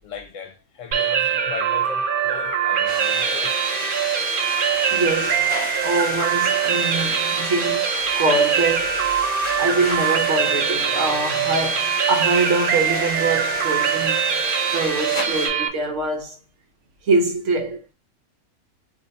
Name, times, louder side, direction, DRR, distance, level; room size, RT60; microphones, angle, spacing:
voice 1, 0.0-3.6, left 6 dB, 65° left, 1.0 m, -37 dB
sound 1, 0.9-15.7, right 8 dB, 85° right, 0.4 m, -23 dB
voice 2, 2.8-3.2 4.9-5.5 5.8-7.9 8.2-9.0 9.6-14.2 14.7-16.4 17.0-17.9, right 3 dB, 65° right, 1.0 m, -24 dB
sound 2, 2.9-15.5, left 1 dB, 25° left, 0.9 m, -31 dB
2.7 x 2.6 x 4.0 m
omnidirectional pair, 1.5 m